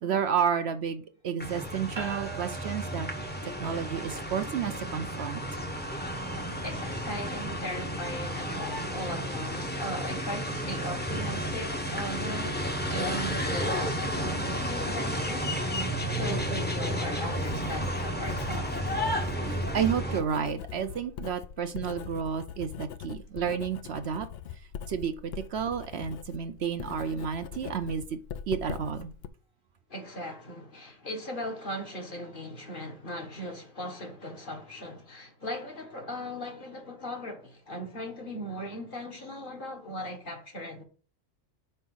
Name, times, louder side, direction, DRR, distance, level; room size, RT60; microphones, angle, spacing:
voice 1, 0.0-3.3 3.6-5.4 19.4-24.3 24.9-28.2 28.5-29.1, right 7 dB, 65° right, 0.8 m, -31 dB
sound 1, 1.4-20.2, equal, 10° left, 0.8 m, -32 dB
sound 2, 2.0-13.5, right 4 dB, 30° right, 0.6 m, -49 dB
voice 2, 6.6-18.9 29.9-40.8, equal, 45° left, 1.4 m, -38 dB
Writing, 16.5-29.3, left 8 dB, 65° left, 0.7 m, -42 dB
5.5 x 4.5 x 6.2 m
omnidirectional pair, 1.3 m